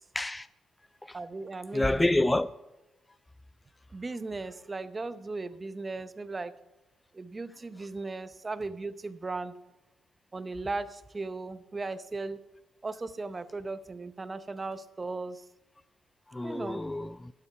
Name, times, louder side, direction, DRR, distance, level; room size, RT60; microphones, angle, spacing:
voice 1, 0.1-0.5 1.0-1.2 1.7-2.5 16.3-17.3, left 1 dB, 15° left, 0.3 m, -28 dB
voice 2, 1.1-2.0 3.9-6.5 7.1-9.5 10.3-12.4 12.8-15.4 16.4-16.8, right 3 dB, 25° right, 0.7 m, -37 dB
12.5 x 8.4 x 5.7 m
cardioid pair, 90°, 0 cm